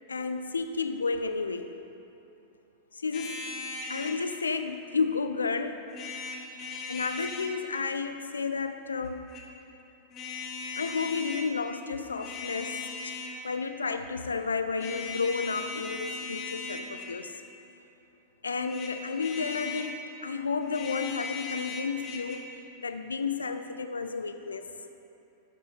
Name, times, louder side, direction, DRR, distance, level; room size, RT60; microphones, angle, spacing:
voice 1, 0.1-1.7 2.9-3.4 3.9-5.8 6.9-9.3 10.8-13.2 13.4-17.3 18.4-22.5 22.8-24.7, left 4 dB, 75° left, 8 dB, 0.4 m, -32 dB
sound 1, 3.1-4.2 5.9-7.5 9.0-9.5 10.1-11.5 12.1-13.4 14.8-17.2 18.6-19.9 20.6-22.4, left 4 dB, 35° left, 1.2 m, -38 dB
12.0 x 5.5 x 4.2 m, 2.9 s
figure-of-eight pair, 90°, 0 cm